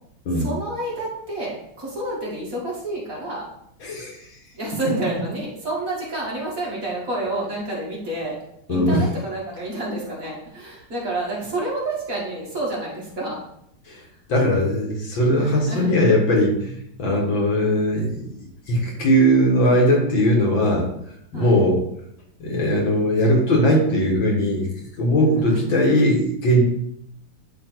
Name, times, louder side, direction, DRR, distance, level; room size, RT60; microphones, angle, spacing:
voice 1, 0.3-3.5 4.5-8.4 8.7-13.4 13.9-14.1 15.3-15.9 21.3-21.6 25.3-25.5, right 2 dB, 40° right, -5 dB, 2.5 m, -29 dB
voice 2, 3.8-4.3 8.7-9.0 13.9-14.0 14.3-20.9 21.3-21.8 22.4-24.7 25.0-26.6, equal, 65° left, -1 dB, 2.5 m, -19 dB
10.5 x 3.5 x 4.6 m, 0.73 s
omnidirectional pair, 2.3 m